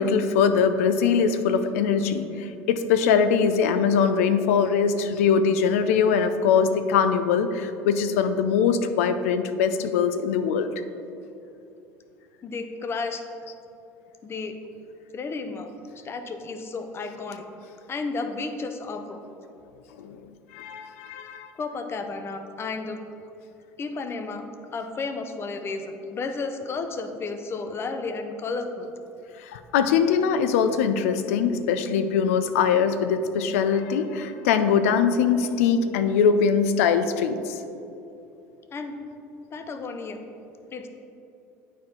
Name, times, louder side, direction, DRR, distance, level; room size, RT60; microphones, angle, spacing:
voice 1, 0.0-10.7 20.0-20.2 20.5-21.5 29.4-37.6, left 6 dB, 85° left, 10 dB, 0.4 m, -22 dB
voice 2, 12.4-13.2 14.2-14.6 15.1-15.7 16.0-17.4 17.9-19.2 21.6-23.0 23.8-24.4 24.7-28.9 38.7-39.0 39.5-40.2 40.7-40.9, left 4 dB, 35° left, 7 dB, 0.7 m, -32 dB
9.3 x 4.5 x 3.7 m, 2.8 s
supercardioid pair, 85°, 7 cm